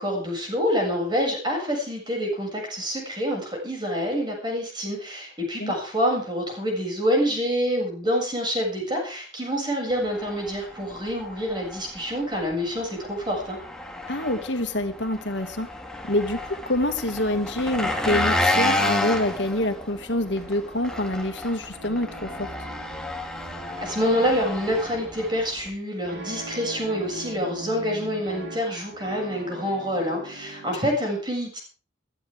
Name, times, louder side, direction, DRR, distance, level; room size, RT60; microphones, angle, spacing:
voice 1, 0.0-13.6 23.8-31.6, equal, 25° right, 0 dB, 7.0 m, -27 dB
Engine, 9.9-25.7, left 1 dB, 5° left, 2.3 m, -31 dB
voice 2, 14.1-15.7 16.0-22.5, left 1 dB, 70° left, 6 dB, 2.3 m, -26 dB
sound 1, 20.2-30.9, right 2 dB, 60° right, 4.6 m, -42 dB
22.0 x 13.0 x 3.7 m, 0.37 s
head